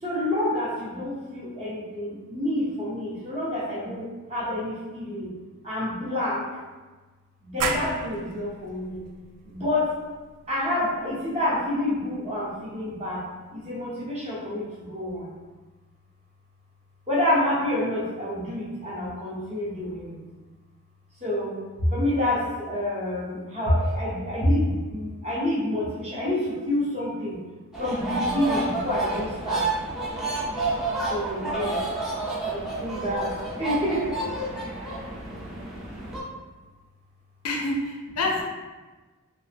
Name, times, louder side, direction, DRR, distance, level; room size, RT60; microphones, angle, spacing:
voice 1, 0.0-5.3 5.6-6.4 7.4-9.0 9.4-9.9 10.5-13.2 13.5-15.3 17.1-20.2 21.2-27.4 27.8-29.7 31.1-31.8 32.4-33.3 33.6-34.1 34.6-35.0, left 1 dB, 30° right, -7 dB, 0.8 m, -28 dB
sound 1, 7.6-13.0, right 4 dB, 90° right, 0.3 m, -36 dB
sound 2, 27.7-36.2, right 2 dB, ahead, 0.4 m, -30 dB
voice 2, 37.4-38.4, left 2 dB, 85° left, 0 dB, 0.5 m, -27 dB
2.8 x 2.1 x 3.3 m, 1.3 s
head